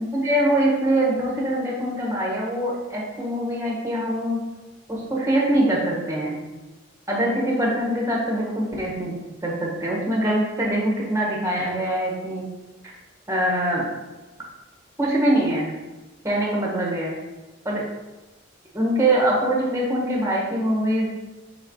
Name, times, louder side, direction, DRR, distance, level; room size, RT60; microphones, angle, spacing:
voice 1, 0.0-4.4 4.9-6.4 7.1-9.1 9.4-12.4 13.3-13.8 15.0-15.7 16.2-17.1 17.6-17.8 18.7-21.1, right 1 dB, 15° right, -3 dB, 1.5 m, -23 dB
5.8 x 4.5 x 3.9 m, 1.1 s
head